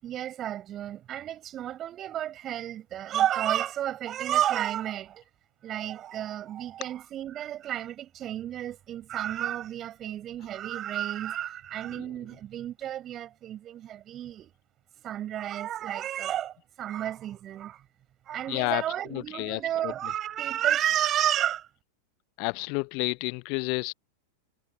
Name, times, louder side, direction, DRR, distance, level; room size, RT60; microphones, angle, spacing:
voice 1, 0.0-5.2 5.6-14.5 15.0-17.8 18.2-21.7, right 11 dB, 30° right, 6.7 m, -31 dB
voice 2, 18.5-18.8 19.1-19.9 22.4-23.9, left 37 dB, 45° left, 0.7 m, -30 dB
figure-of-eight pair, 90°, 0 cm